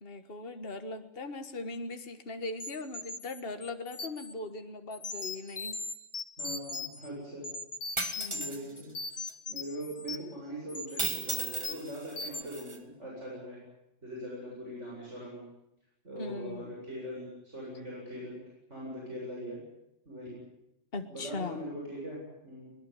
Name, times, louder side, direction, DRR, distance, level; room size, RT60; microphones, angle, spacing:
voice 1, 0.0-5.8 8.2-8.7 16.2-16.7 20.9-21.6, left 3 dB, 50° left, 7 dB, 1.8 m, -40 dB
sound 1, 2.6-4.3 4.9-7.1 7.4-8.5 8.8-10.3 10.7-11.0 11.3-11.9 12.2-12.4, left 3 dB, 65° left, 1.8 m, -39 dB
voice 2, 6.4-7.5 8.3-8.9 9.5-13.6 14.0-15.5 16.0-18.4 18.7-19.6 20.0-20.4 21.1-22.7, equal, 70° right, -4 dB, 8.4 m, -41 dB
sound 2, 8.0-8.6 9.3-9.4 11.0-12.8, right 2 dB, 25° right, 1.7 m, -35 dB
22.5 x 21.0 x 9.9 m, 0.86 s
omnidirectional pair, 1.3 m